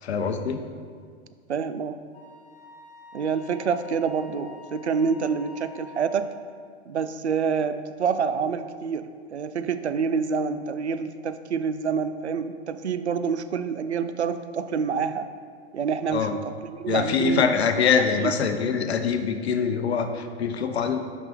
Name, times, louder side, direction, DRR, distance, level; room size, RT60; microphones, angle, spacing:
voice 1, 0.0-0.6 16.1-16.3 16.9-21.0, left 6 dB, 70° left, 7 dB, 0.7 m, -24 dB
voice 2, 1.5-2.0 3.1-6.3 6.9-15.3 15.7-16.5 16.8-17.4 18.2-18.3, right 6 dB, 85° right, 11 dB, 0.5 m, -27 dB
Wind instrument woodwind instrument, 2.1-6.3, left 3 dB, 25° left, 0.8 m, -47 dB
6.0 x 5.4 x 4.5 m, 2.1 s
figure-of-eight pair, 100°, 33 cm